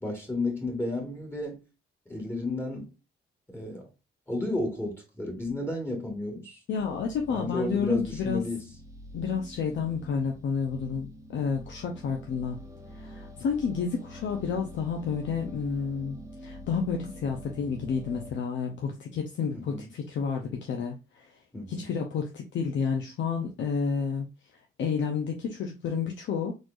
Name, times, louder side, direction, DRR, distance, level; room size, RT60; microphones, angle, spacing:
voice 1, 0.0-1.6 2.1-2.9 3.5-3.9 4.3-6.6 7.3-8.7 19.5-19.8 21.5-21.9, left 2 dB, 10° left, 1.6 m, -32 dB
voice 2, 6.7-8.4 9.1-12.6 12.9-21.3 21.7-24.3 24.8-26.5, left 6 dB, 70° left, 0.8 m, -30 dB
sound 1, 6.8-18.3, left 1 dB, 15° right, 0.7 m, -46 dB
4.2 x 3.1 x 2.5 m
cardioid pair, 90°, 20 cm